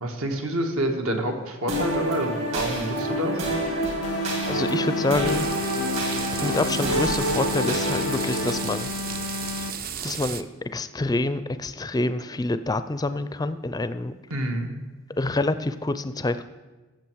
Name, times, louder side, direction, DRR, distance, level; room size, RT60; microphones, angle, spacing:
voice 1, 0.0-3.4 14.3-14.7, right 1 dB, 75° right, 4 dB, 1.5 m, -27 dB
sound 1, 1.7-8.5, equal, 60° right, 3.0 m, -27 dB
sound 2, 4.0-9.9, left 5 dB, 80° left, 0.4 m, -33 dB
voice 2, 4.5-5.5 6.4-8.9 10.0-10.5 10.7-14.1 15.2-16.4, left 2 dB, 15° left, 12 dB, 0.4 m, -27 dB
sound 3, 5.2-10.4, right 8 dB, 40° right, 0.5 m, -34 dB
14.0 x 7.3 x 4.6 m, 1.2 s
head